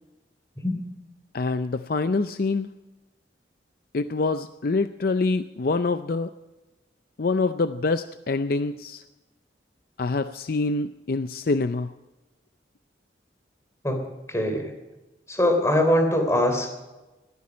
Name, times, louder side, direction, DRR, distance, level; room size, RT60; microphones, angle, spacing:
voice 1, 1.3-2.7 3.9-6.3 7.2-9.0 10.0-11.9, left 3 dB, 55° left, 10 dB, 0.5 m, -25 dB
voice 2, 13.8-14.7 15.3-16.8, left 1 dB, 15° left, 5 dB, 3.3 m, -22 dB
20.0 x 14.0 x 5.2 m, 1.1 s
head